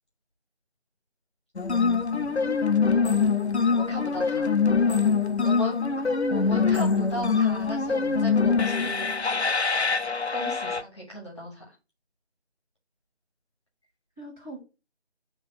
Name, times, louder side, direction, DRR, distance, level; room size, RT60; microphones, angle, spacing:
sound 1, 1.6-10.8, left 5 dB, 75° left, 0.8 m, -24 dB
voice 1, 2.1-3.1 5.9-6.1 14.2-14.6, right 3 dB, 5° right, -21 dB, 1.5 m, -42 dB
voice 2, 3.7-4.6 5.4-5.8 6.3-9.1 10.3-11.6, equal, 25° left, -3 dB, 1.8 m, -36 dB
8.3 x 3.3 x 4.1 m, 0.29 s
figure-of-eight pair, 165°, 33 cm